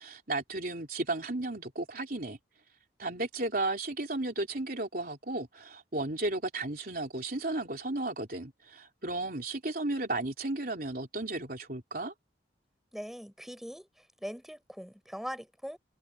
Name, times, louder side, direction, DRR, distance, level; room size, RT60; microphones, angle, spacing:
voice 1, 0.0-2.4 3.0-12.1, right 2 dB, 50° right, 3.6 m, -34 dB
voice 2, 12.9-13.9 14.2-15.8, equal, ahead, 6.7 m, -41 dB
head